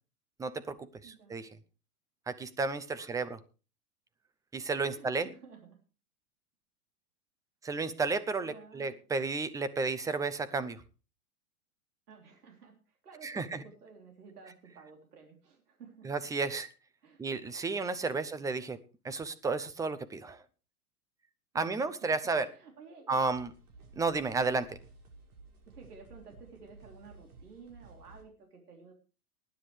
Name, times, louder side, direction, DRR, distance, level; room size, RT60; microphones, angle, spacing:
voice 1, 0.4-0.8 1.0-1.5 2.3-3.4 4.5-5.3 7.6-10.8 13.2-13.6 16.0-16.7 17.2-18.8 19.0-20.4 21.5-22.5 23.1-23.5 24.0-24.8, right 4 dB, 10° right, 14 dB, 0.6 m, -32 dB
voice 2, 1.0-1.4 2.9-3.3 4.8-5.8 8.4-9.0 12.1-16.1 17.0-17.2 21.5-22.1 22.4-23.2 25.7-28.9, right 5 dB, 90° right, 2 dB, 3.4 m, -53 dB
sound 1, 23.2-28.2, right 3 dB, 75° right, 5.4 m, -55 dB
19.5 x 10.0 x 3.3 m, 0.34 s
hypercardioid pair, 125°, 45 cm